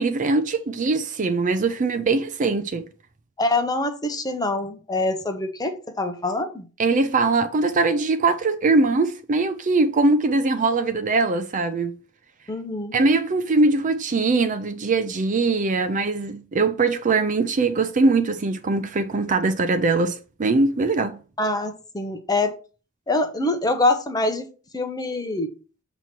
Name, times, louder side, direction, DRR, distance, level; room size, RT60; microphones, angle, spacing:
voice 1, 0.0-2.9 6.8-12.0 12.9-21.2, right 3 dB, 35° right, 0.5 m, -21 dB
voice 2, 3.4-6.7 12.5-13.0 21.4-22.5 23.1-25.5, left 2 dB, 20° left, 0.9 m, -25 dB
6.9 x 3.0 x 5.9 m
head